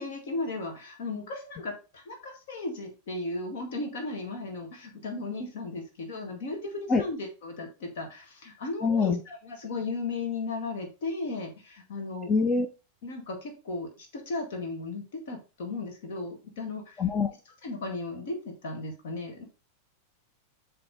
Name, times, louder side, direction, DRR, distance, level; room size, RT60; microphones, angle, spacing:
voice 1, 0.0-12.3 13.0-17.0 17.6-19.4, left 3 dB, 55° left, 2.0 m, -36 dB
voice 2, 8.8-9.2 12.3-12.7 17.0-17.3, left 4 dB, 20° left, 0.6 m, -24 dB
7.6 x 3.5 x 3.9 m
figure-of-eight pair, 90°, 0 cm